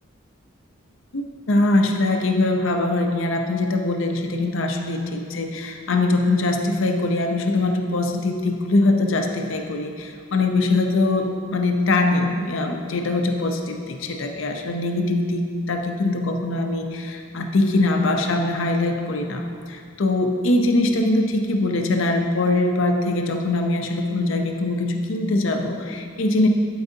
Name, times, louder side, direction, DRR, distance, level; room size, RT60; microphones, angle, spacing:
voice 1, 1.1-26.5, left 2 dB, 60° left, 4 dB, 0.6 m, -22 dB
11.5 x 4.7 x 2.7 m, 2.2 s
head